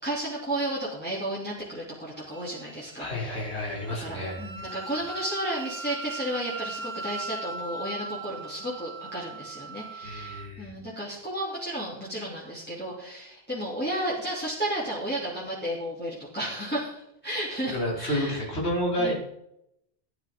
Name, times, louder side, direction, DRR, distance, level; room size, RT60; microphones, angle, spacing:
voice 1, 0.0-3.4 3.7-18.4 19.0-19.1, right 1 dB, 10° left, -8 dB, 2.8 m, -33 dB
Wind instrument woodwind instrument, 2.3-10.5, right 3 dB, 60° right, 1.4 m, -40 dB
voice 2, 3.0-4.5 10.0-10.7 17.7-19.1, equal, 75° left, -3 dB, 3.5 m, -30 dB
14.0 x 10.5 x 3.8 m, 0.79 s
omnidirectional pair, 1.1 m